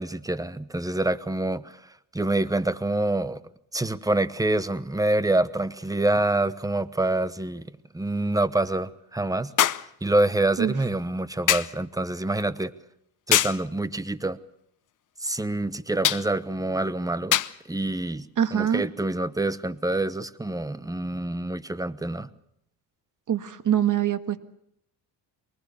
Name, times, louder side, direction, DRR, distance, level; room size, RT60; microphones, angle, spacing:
voice 1, 0.0-1.8 2.1-3.4 3.7-7.7 7.9-9.5 10.0-12.7 13.3-14.4 15.2-17.4 17.7-18.3 18.5-22.3, right 2 dB, 10° right, 15 dB, 1.0 m, -26 dB
sound 1, 5.8-5.9 9.6-9.9 11.5-11.8 13.3-13.6 16.0-16.3 17.3-17.6 18.7-18.8, left 11 dB, 45° left, 0.8 m, -23 dB
voice 2, 18.4-18.8 23.3-24.4, right 9 dB, 45° right, 11 dB, 1.7 m, -24 dB
23.5 x 20.0 x 6.9 m, 0.74 s
cardioid pair, 100°, 42 cm